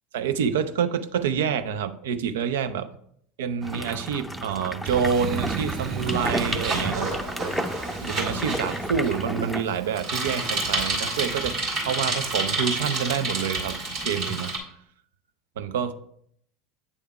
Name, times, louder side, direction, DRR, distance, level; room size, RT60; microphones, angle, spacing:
voice 1, 0.1-2.9 3.4-7.1 8.0-11.6 11.9-13.8 14.0-14.5 15.6-15.9, right 7 dB, 75° right, 0.4 m, -27 dB
sound 1, 3.6-9.6, right 1 dB, ahead, 0.5 m, -32 dB
Boom, 4.9-7.6, right 7 dB, 40° right, 0.7 m, -33 dB
Bicycle, 5.1-14.6, right 2 dB, 60° right, 2.2 m, -30 dB
8.1 x 3.5 x 4.7 m
hypercardioid pair, 80°, 0 cm